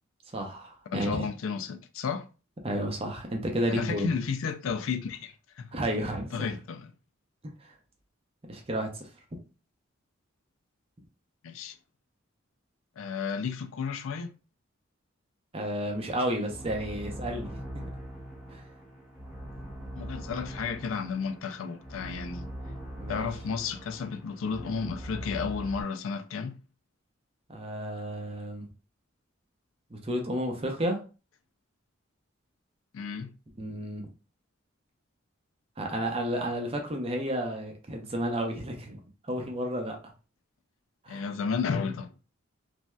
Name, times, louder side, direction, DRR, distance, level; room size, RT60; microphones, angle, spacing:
voice 1, 0.3-1.3 2.6-4.1 5.7-6.5 7.4-7.7 8.5-9.1 15.5-17.5 18.5-18.6 23.0-23.2 27.5-28.7 29.9-31.0 33.6-34.1 35.8-39.0 39.3-40.0 41.0-41.2, right 1 dB, 25° right, 0.6 m, -32 dB
voice 2, 0.9-2.3 3.7-5.7 6.3-6.9 11.4-11.8 13.0-14.3 20.0-22.5 23.1-26.6 32.9-33.3 41.1-42.1, left 5 dB, 75° left, 0.4 m, -32 dB
sound 1, 15.8-25.8, equal, ahead, 1.0 m, -42 dB
3.1 x 2.7 x 2.2 m
head